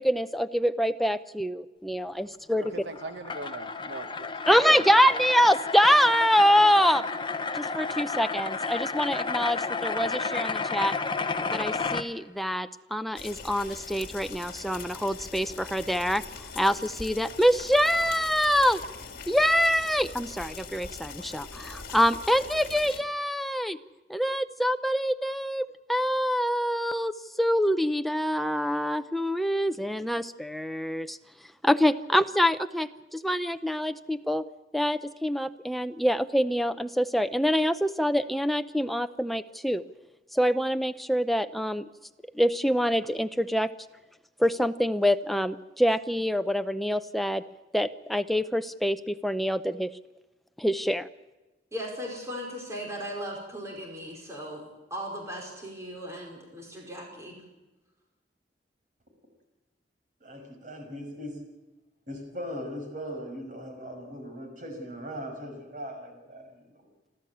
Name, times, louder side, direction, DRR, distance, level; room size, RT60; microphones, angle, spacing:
voice 1, 0.0-2.7 4.5-7.0 7.5-10.9 11.5-16.2 16.6-18.8 19.3-23.8 24.1-31.2 31.6-34.4 34.7-39.8 40.3-41.9 42.3-43.7 44.4-47.4 47.7-49.9 50.6-51.1, equal, ahead, 9 dB, 0.6 m, -25 dB
sound 1, 2.6-12.0, left 4 dB, 30° left, 0.9 m, -32 dB
voice 2, 2.8-4.9, right 2 dB, 75° right, 8 dB, 1.0 m, -41 dB
sound 2, 13.2-23.0, left 5 dB, 55° left, 2.4 m, -42 dB
voice 3, 51.7-57.4, equal, 15° right, -1 dB, 5.0 m, -38 dB
voice 4, 60.2-61.3 62.1-66.9, equal, 50° right, 4 dB, 6.1 m, -39 dB
28.5 x 13.0 x 8.6 m, 1.1 s
head